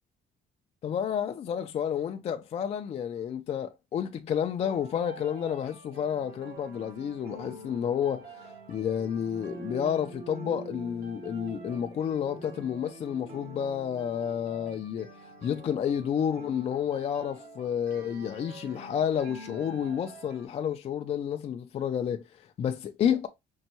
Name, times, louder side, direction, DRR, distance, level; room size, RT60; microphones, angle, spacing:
voice 1, 0.8-15.1 15.4-23.3, left 8 dB, 40° left, 0.4 m, -30 dB
sound 1, 4.6-20.5, right 2 dB, 60° right, 1.4 m, -46 dB
5.3 x 2.2 x 2.9 m
cardioid pair, 110°, 17 cm